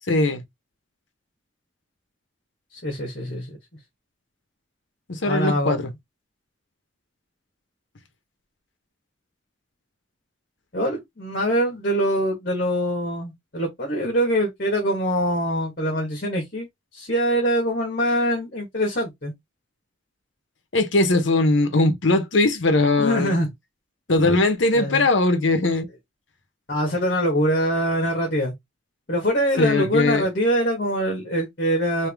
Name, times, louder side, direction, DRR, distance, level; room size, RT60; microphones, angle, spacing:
voice 1, 0.1-0.4 5.1-5.9 20.7-23.4 24.1-25.9 29.6-30.3, left 2 dB, 75° left, 0.9 m, -20 dB
voice 2, 2.7-3.6 5.2-5.9 10.7-16.7 16.9-19.3 23.0-23.5 24.7-25.1 26.7-28.5 29.1-32.1, equal, 50° left, 1.4 m, -24 dB
3.5 x 2.8 x 3.4 m
head